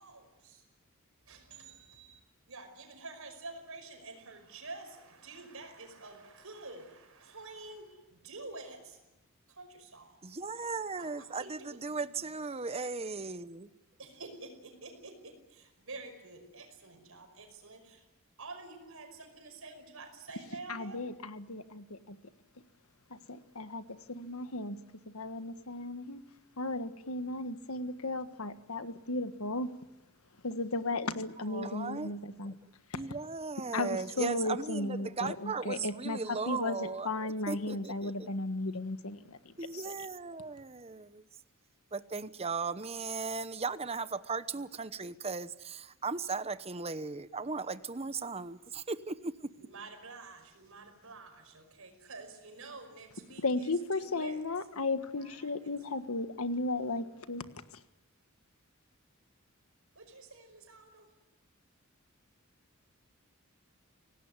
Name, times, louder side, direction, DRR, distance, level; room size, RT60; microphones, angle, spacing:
voice 1, 0.0-0.6 1.2-2.2 2.5-9.0 9.5-12.3 14.0-18.1 18.4-21.0 49.6-54.4 55.0-55.7 60.0-61.1, right 3 dB, 75° right, 5.4 m, -49 dB
voice 2, 10.2-13.7 31.4-32.2 32.5-32.6 32.9-38.3 39.6-41.2 41.9-49.5, right 4 dB, 30° right, 0.9 m, -37 dB
voice 3, 20.7-22.2 23.1-24.8 25.1-26.2 26.6-29.7 30.4-32.5 32.9-33.0 33.7-36.2 36.5-39.8 53.4-57.4, left 2 dB, 85° left, 1.5 m, -35 dB
26.0 x 18.5 x 9.7 m
head